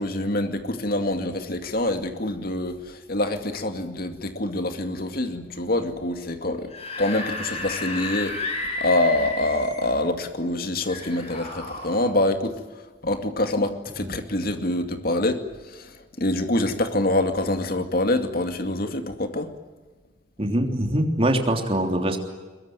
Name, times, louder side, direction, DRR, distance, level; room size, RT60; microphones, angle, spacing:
voice 1, 0.0-6.7 7.0-8.4 8.8-12.6 13.0-19.5, left 1 dB, 55° left, 6 dB, 2.3 m, -25 dB
Screaming / Screech, 6.5-9.9 10.9-12.0, left 2 dB, 35° left, 6.9 m, -32 dB
voice 2, 20.4-22.2, right 1 dB, 30° right, 3 dB, 3.3 m, -23 dB
22.5 x 22.5 x 9.1 m, 1.3 s
head